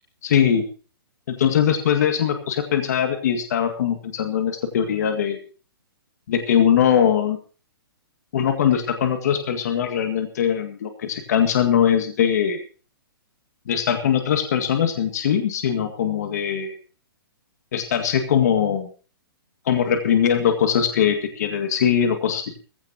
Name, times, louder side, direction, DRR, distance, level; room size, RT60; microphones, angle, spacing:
voice 1, 0.2-0.6 1.3-5.4 6.3-7.4 8.3-12.6 13.7-16.8 17.7-18.9 19.7-22.6, left 8 dB, 45° left, 6 dB, 2.1 m, -21 dB
18.5 x 16.0 x 2.8 m, 0.37 s
hypercardioid pair, 175°, 12 cm